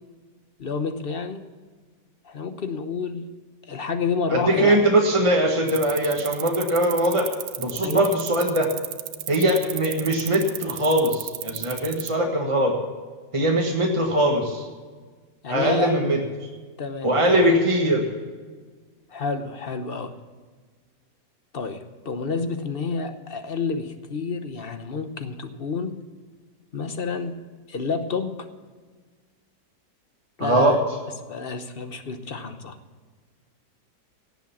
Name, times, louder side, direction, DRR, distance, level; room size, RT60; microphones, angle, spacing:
voice 1, 0.6-1.5 2.2-3.3 3.7-4.9 7.8-8.1 15.4-16.1 16.8-17.5 19.1-20.2 21.5-26.0 26.7-27.3 27.7-28.5 30.4-30.8 31.3-32.8, left 4 dB, 40° left, 9 dB, 0.9 m, -29 dB
voice 2, 4.3-7.3 7.6-8.7 9.3-12.7 13.3-14.6 15.5-16.2 17.0-18.0 30.4-30.7, right 1 dB, 20° right, 0 dB, 1.4 m, -21 dB
sound 1, 5.7-12.1, right 13 dB, 85° right, 1.3 m, -33 dB
17.0 x 7.7 x 7.3 m, 1.5 s
omnidirectional pair, 1.9 m